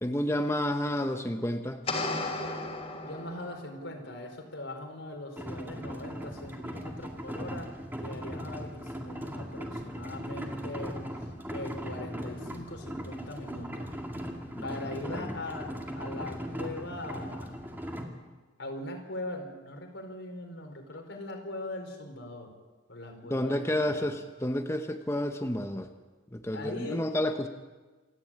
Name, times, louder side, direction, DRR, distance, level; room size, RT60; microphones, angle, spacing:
voice 1, 0.0-1.8 14.5-14.7 15.0-15.4 23.3-25.9 26.3-27.5, left 1 dB, 15° left, 5 dB, 1.0 m, -30 dB
sound 1, 1.9-3.8, left 2 dB, 35° left, 3.1 m, -34 dB
voice 2, 3.0-7.7 8.0-11.0 11.5-13.9 14.6-15.7 15.9-17.5 18.6-22.5 22.9-24.1 26.5-27.1, left 1 dB, 85° left, 3 dB, 4.4 m, -40 dB
sound 2, 5.4-18.0, equal, 10° right, 2.3 m, -38 dB
28.0 x 11.5 x 8.7 m, 1.3 s
head